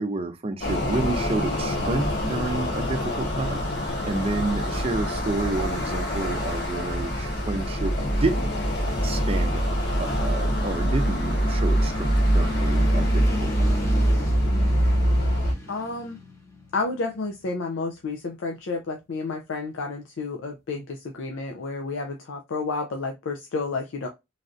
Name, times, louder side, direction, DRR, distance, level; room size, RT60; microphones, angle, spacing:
voice 1, 0.0-3.6 4.0-8.5 9.0-9.7 10.0-13.7, right 2 dB, 30° right, 0.5 m, -30 dB
sound 1, 0.6-15.5, equal, 60° left, 1.3 m, -24 dB
sound 2, 3.3-17.5, left 2 dB, 15° left, 0.7 m, -37 dB
voice 2, 15.7-16.2 16.7-24.1, left 3 dB, 75° left, 0.5 m, -31 dB
3.2 x 2.5 x 2.4 m
head